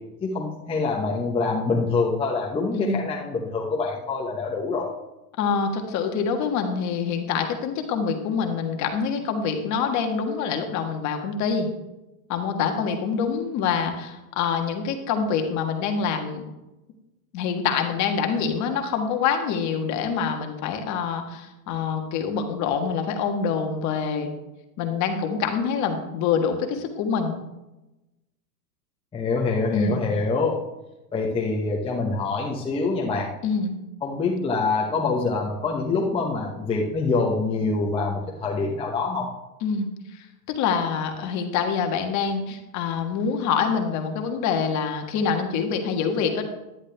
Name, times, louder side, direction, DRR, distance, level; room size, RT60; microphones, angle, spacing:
voice 1, 0.2-4.9 29.1-30.6 31.1-33.3 34.0-39.3, left 3 dB, 10° left, -1 dB, 0.9 m, -25 dB
voice 2, 2.7-3.1 5.4-11.7 12.3-16.4 17.3-24.3 24.8-27.4 29.7-30.0 33.4-33.7 39.6-46.4, left 6 dB, 35° left, 4 dB, 1.5 m, -26 dB
10.5 x 9.8 x 3.4 m, 0.97 s
hypercardioid pair, 130°, 50 cm